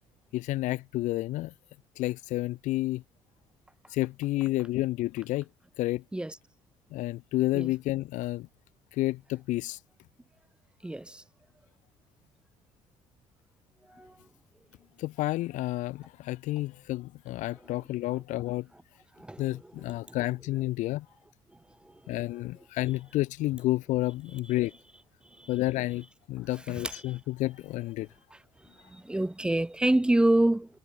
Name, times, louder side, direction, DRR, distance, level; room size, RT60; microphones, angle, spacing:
voice 1, 0.3-1.5 2.0-3.0 3.9-5.5 5.8-6.0 6.9-8.5 9.0-9.8 15.0-18.7 19.4-21.0 22.1-24.7 25.5-28.1, left 17 dB, 75° left, 6.6 m, -30 dB
voice 2, 10.8-11.2 14.0-14.1 19.2-19.4 26.8-26.9 28.9-30.8, right 1 dB, 5° right, 6.7 m, -26 dB
cardioid pair, 120°, 13 cm